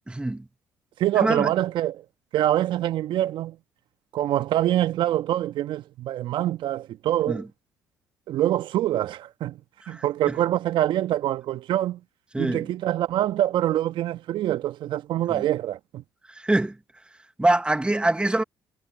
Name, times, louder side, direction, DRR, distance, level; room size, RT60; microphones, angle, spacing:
voice 1, 0.1-0.4 1.2-1.5 7.3-7.4 9.9-10.0 12.3-12.6 15.3-15.4 16.3-16.7 17.4-18.4, right 2 dB, 10° right, 1.3 m, -24 dB
voice 2, 1.0-2.0 2.3-3.6 4.1-7.5 8.3-9.6 9.9-12.0 12.4-16.0, right 13 dB, 65° right, 1.3 m, -25 dB
hypercardioid pair, 55°, 9 cm